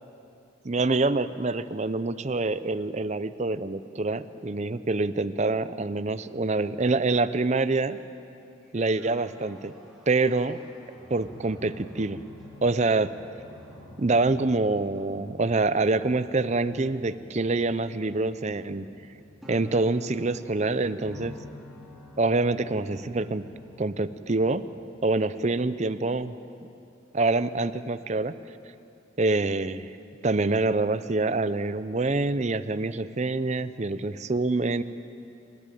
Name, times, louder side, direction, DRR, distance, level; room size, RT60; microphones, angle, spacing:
voice 1, 0.6-8.0 8.7-9.7 10.1-10.6 11.1-12.2 12.6-13.1 14.0-18.9 19.5-21.4 22.2-23.5 23.8-24.7 25.0-26.3 27.1-28.3 29.2-29.9 30.2-34.8, right 3 dB, 35° right, 13 dB, 0.6 m, -26 dB
sound 1, 8.6-25.0, left 1 dB, ahead, 3.5 m, -49 dB
27.0 x 14.0 x 9.3 m, 2.7 s
head